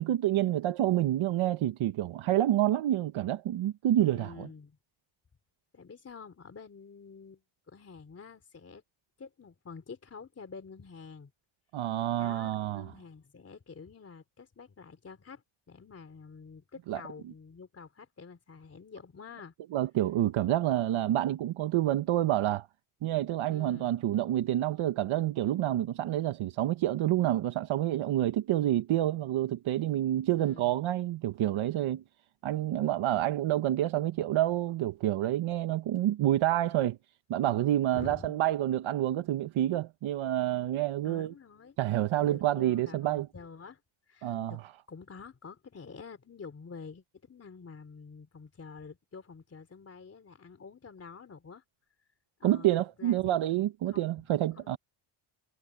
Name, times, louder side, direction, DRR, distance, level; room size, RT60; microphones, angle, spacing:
voice 1, 0.0-4.5 11.7-12.9 16.9-17.0 19.7-22.7 23.0-32.0 32.4-37.0 37.3-41.3 41.8-43.3 44.2-44.5 52.4-54.8, right 13 dB, 70° right, 1.0 m, -28 dB
voice 2, 4.0-4.8 5.7-8.8 9.2-11.3 12.2-19.5 23.5-24.0 30.4-30.8 37.9-38.4 41.0-41.8 42.2-43.8 44.1-51.6 52.4-52.7 53.0-53.3 53.9-54.8, left 5 dB, 30° left, 3.5 m, -48 dB
cardioid pair, 155°, 50 cm